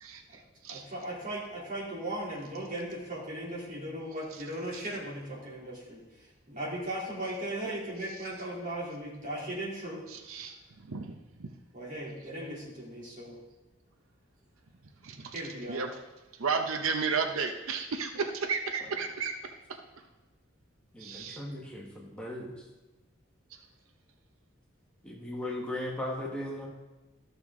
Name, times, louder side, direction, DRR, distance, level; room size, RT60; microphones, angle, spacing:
voice 1, 0.7-10.0 11.7-13.4 15.3-15.9, right 1 dB, 40° right, -5 dB, 2.9 m, -37 dB
voice 2, 10.1-10.5 10.9-11.1 11.4-11.5 15.0-15.3 15.7-15.9 16.4-19.3 21.0-21.4, right 5 dB, 90° right, 6 dB, 0.7 m, -32 dB
voice 3, 20.9-22.6 25.0-26.7, left 1 dB, 5° left, -3 dB, 1.2 m, -37 dB
13.0 x 6.6 x 3.6 m, 1.1 s
head